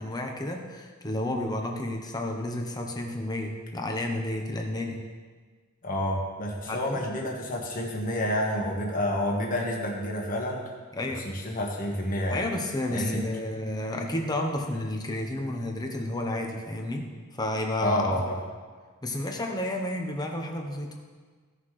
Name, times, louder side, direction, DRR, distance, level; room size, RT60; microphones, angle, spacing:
voice 1, 0.0-5.0 6.7-7.0 10.9-11.3 12.3-18.0 19.0-20.9, left 1 dB, 20° left, 2 dB, 1.0 m, -31 dB
voice 2, 5.8-10.6 11.2-12.5 12.9-13.2 17.8-18.4, left 1 dB, 40° left, -1 dB, 1.6 m, -29 dB
15.5 x 5.8 x 3.3 m, 1.5 s
head